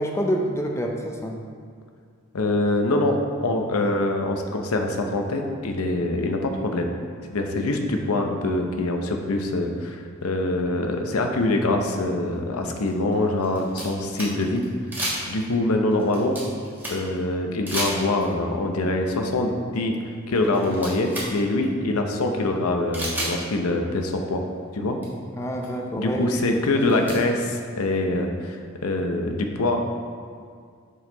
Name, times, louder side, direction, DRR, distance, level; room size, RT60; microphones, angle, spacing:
voice 1, 0.0-1.3 25.3-26.4 26.7-26.8, equal, 10° left, 1 dB, 0.4 m, -27 dB
voice 2, 2.3-6.9 7.3-14.6 15.3-16.4 16.9-20.0 20.3-24.4 24.7-25.0 26.0-29.9, left 2 dB, 85° left, 4 dB, 0.7 m, -24 dB
sound 1, 11.8-11.9 12.8-14.7 14.9-15.5 15.9-17.2 17.7-18.4 19.8-19.9 20.3-21.3 21.6-21.7 22.9-23.4 24.6-24.7 25.0-25.1 25.6-25.7 26.6-27.2, right 1 dB, 10° right, 1.2 m, -31 dB
5.5 x 5.4 x 3.9 m, 2.1 s
head